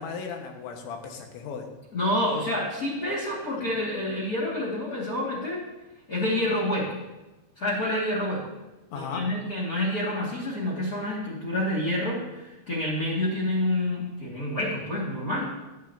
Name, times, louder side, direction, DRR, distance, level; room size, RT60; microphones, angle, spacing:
voice 1, 0.0-1.7 8.9-9.3, left 6 dB, 85° left, 3 dB, 3.6 m, -36 dB
voice 2, 1.9-5.6 6.1-7.0 7.6-8.5 8.9-15.5, left 1 dB, 55° left, -3 dB, 1.0 m, -28 dB
16.5 x 11.0 x 2.7 m, 1.1 s
omnidirectional pair, 5.2 m